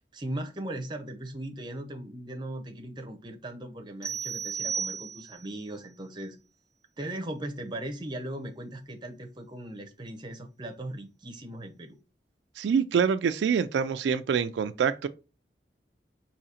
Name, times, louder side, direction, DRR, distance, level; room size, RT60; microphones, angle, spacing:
voice 1, 0.0-6.4 7.0-12.0, right 1 dB, 25° right, 0.6 m, -38 dB
sound 1, 4.0-5.6, right 6 dB, 5° left, 0.9 m, -34 dB
voice 2, 12.6-15.1, right 6 dB, 85° right, 0.3 m, -25 dB
4.9 x 2.7 x 2.8 m
head